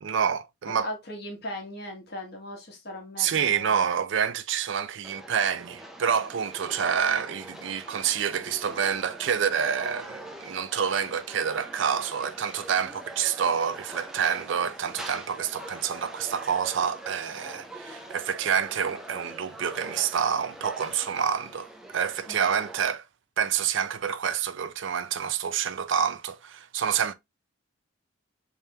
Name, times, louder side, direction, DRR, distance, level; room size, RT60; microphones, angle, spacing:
voice 1, 0.0-0.9 3.2-23.0 23.4-27.1, right 7 dB, 65° right, 0.4 m, -28 dB
voice 2, 0.7-3.9 22.3-22.5, left 1 dB, 50° left, 1.3 m, -38 dB
sound 1, 5.0-22.9, right 1 dB, ahead, 0.4 m, -43 dB
3.5 x 3.3 x 2.7 m
head